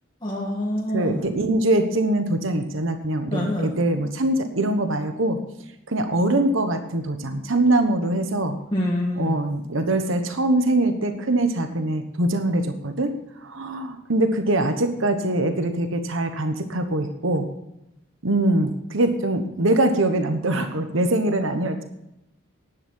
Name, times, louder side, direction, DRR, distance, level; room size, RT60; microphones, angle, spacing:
voice 1, 0.2-1.2 3.3-3.7 8.7-9.4, left 1 dB, 20° left, -4 dB, 1.6 m, -26 dB
voice 2, 0.9-5.4 5.9-8.6 9.2-13.1 13.4-17.5 18.2-21.8, right 1 dB, 75° right, 7 dB, 1.2 m, -23 dB
11.0 x 9.4 x 5.5 m, 0.87 s
head